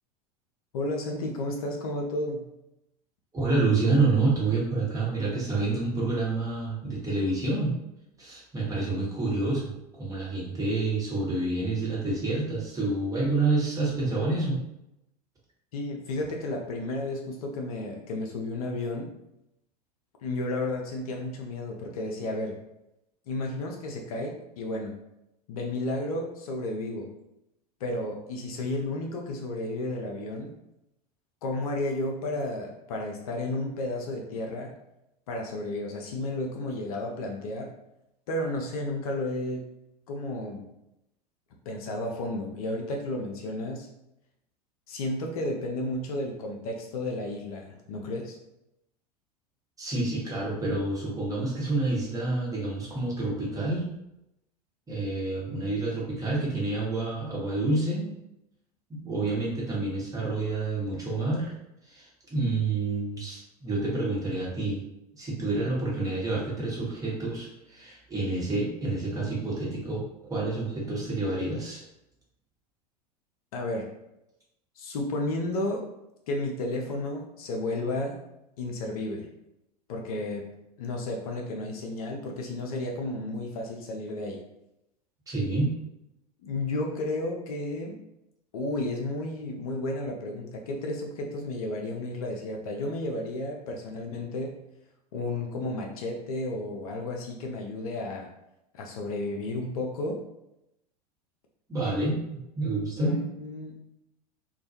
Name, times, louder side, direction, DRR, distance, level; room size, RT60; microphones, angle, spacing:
voice 1, 0.7-2.5 15.7-19.1 20.2-22.6 23.3-25.0 25.5-27.1 27.8-30.5 31.4-34.7 35.3-37.7 38.3-39.7 40.1-40.7 41.7-43.9 44.9-48.4 73.5-73.9 74.8-75.9 76.3-78.2 78.6-79.3 79.9-80.4 80.8-84.4 86.4-88.0 88.5-94.6 95.1-98.3 98.7-100.2 103.0-103.8, left 2 dB, 60° left, 1 dB, 0.5 m, -32 dB
voice 2, 3.3-7.7 8.2-14.6 49.8-53.9 54.9-58.1 58.9-61.5 61.9-64.8 65.2-70.0 70.3-71.8 85.3-85.7 101.7-103.1, right 3 dB, 15° right, -5 dB, 1.0 m, -28 dB
2.3 x 2.2 x 2.7 m, 0.85 s
figure-of-eight pair, 85°, 21 cm